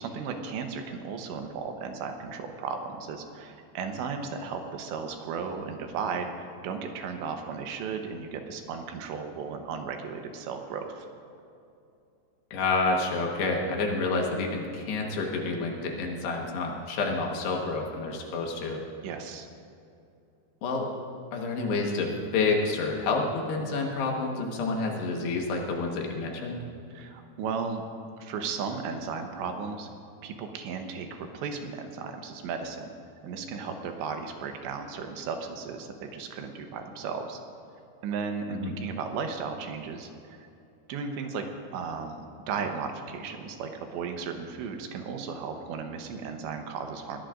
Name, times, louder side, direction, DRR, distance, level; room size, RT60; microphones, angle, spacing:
voice 1, 0.0-11.1 19.0-19.5 26.9-27.8 28.2-29.9 30.2-32.9 33.2-37.4 38.0-40.5 40.9-41.4 41.7-47.3, right 5 dB, 80° right, 4 dB, 3.2 m, -35 dB
voice 2, 12.5-18.8 20.6-20.9 21.3-26.6 38.5-38.7, left 3 dB, 70° left, 0 dB, 3.3 m, -29 dB
21.5 x 17.0 x 2.6 m, 2.6 s
omnidirectional pair, 5.2 m